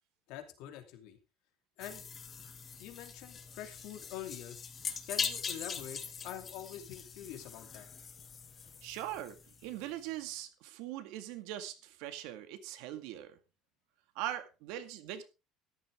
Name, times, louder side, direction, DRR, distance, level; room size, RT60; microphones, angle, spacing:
voice 1, 0.3-1.2 1.8-2.0 2.8-4.6 5.1-7.9, left 11 dB, 70° left, 7 dB, 2.5 m, -45 dB
sound 1, 1.8-9.9, left 6 dB, 30° left, 1.6 m, -42 dB
voice 2, 8.8-13.4 14.2-15.2, right 12 dB, 80° right, 10 dB, 1.9 m, -41 dB
13.5 x 11.0 x 3.6 m, 0.29 s
cardioid pair, 135°, 0 cm